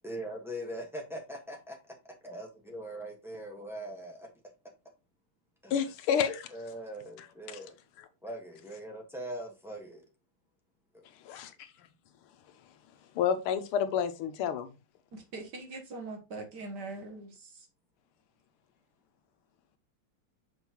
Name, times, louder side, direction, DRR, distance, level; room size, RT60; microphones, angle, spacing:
voice 1, 0.0-4.3 5.6-5.8 6.5-7.8 8.2-10.1 10.9-11.0, right 1 dB, ahead, 1.1 m, -41 dB
voice 2, 5.7-6.5 7.5-7.6 11.2-11.5 13.1-14.7, left 8 dB, 80° left, 1.6 m, -29 dB
voice 3, 15.1-17.7, right 3 dB, 55° right, 1.7 m, -42 dB
6.4 x 5.4 x 3.0 m
omnidirectional pair, 2.4 m